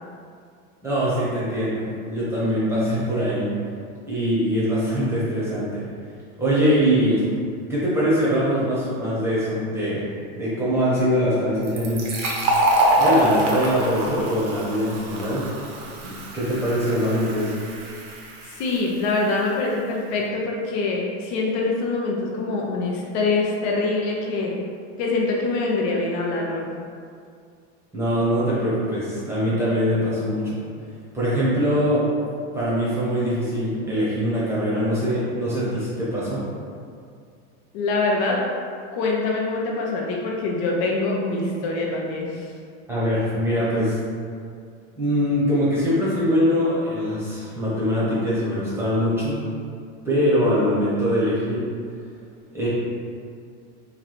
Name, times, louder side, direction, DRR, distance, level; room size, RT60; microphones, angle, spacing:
voice 1, 0.8-3.5 4.0-5.8 6.4-7.2 7.7-10.0 10.4-12.1 13.0-15.5 16.0-17.5 27.9-30.6 31.1-32.1 32.5-36.4 42.9-44.0 45.0-49.4 50.0-51.6 52.5-52.7, equal, 5° right, -9 dB, 0.9 m, -22 dB
Fill (with liquid), 11.6-19.0, right 1 dB, 55° right, 0.8 m, -25 dB
voice 2, 18.6-24.5 25.0-26.7 37.7-38.4 38.9-42.5, left 3 dB, 60° left, -2 dB, 0.7 m, -24 dB
3.2 x 2.7 x 4.1 m, 2.3 s
supercardioid pair, 155°, 35 cm